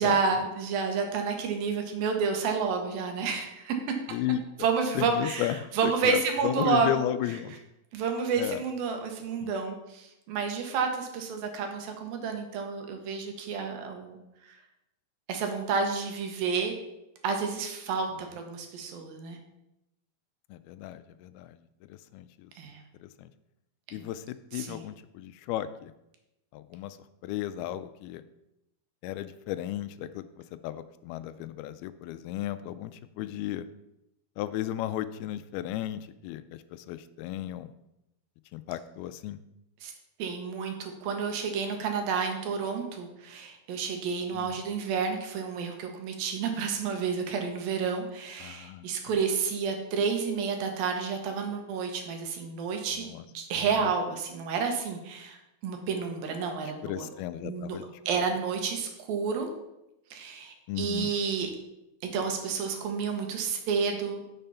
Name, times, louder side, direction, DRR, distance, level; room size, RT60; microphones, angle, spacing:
voice 1, 0.0-3.8 4.6-7.0 7.9-14.2 14.5-14.6 15.3-16.7 17.2-19.4 22.6-22.8 24.0-24.1 24.5-24.8 39.8-39.9 40.2-53.1 53.3-55.4 55.6-57.1 57.4-57.8 58.1-59.5 60.1-61.5 62.1-64.2, right 5 dB, 70° right, 4 dB, 2.8 m, -30 dB
voice 2, 4.1-4.7 5.0-5.6 5.8-7.6 8.4-8.6 9.4-9.5 20.5-21.6 22.1-22.5 23.0-23.3 23.9-25.9 26.5-27.0 27.2-28.2 29.0-30.2 30.6-33.7 34.4-37.7 38.5-39.4 44.3-44.6 48.4-49.2 53.0-53.2 53.6-53.9 56.8-57.9 60.7-61.1, left 13 dB, 85° left, 12 dB, 2.4 m, -34 dB
9.1 x 6.8 x 5.6 m, 0.89 s
omnidirectional pair, 4.5 m